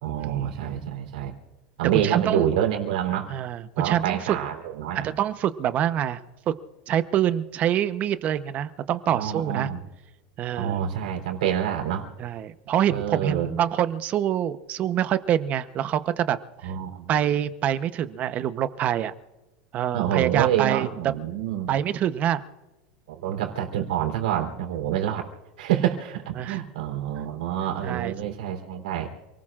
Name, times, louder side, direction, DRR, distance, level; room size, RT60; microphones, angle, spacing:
voice 1, 0.0-1.3 1.8-3.3 3.8-5.1 9.1-9.8 10.6-12.1 12.9-13.5 16.6-17.1 19.9-21.7 23.1-25.3 25.6-29.1, right 10 dB, 90° right, 3 dB, 3.6 m, -27 dB
voice 2, 1.9-2.5 3.3-4.4 5.0-6.2 6.5-6.6 6.9-9.7 10.4-10.8 12.2-16.4 16.6-16.7 17.1-19.1 19.7-21.1 21.7-22.4 26.4-26.6 27.8-28.1, right 10 dB, 35° right, 12 dB, 0.9 m, -25 dB
28.5 x 19.0 x 2.5 m, 1.1 s
supercardioid pair, 140°, 4 cm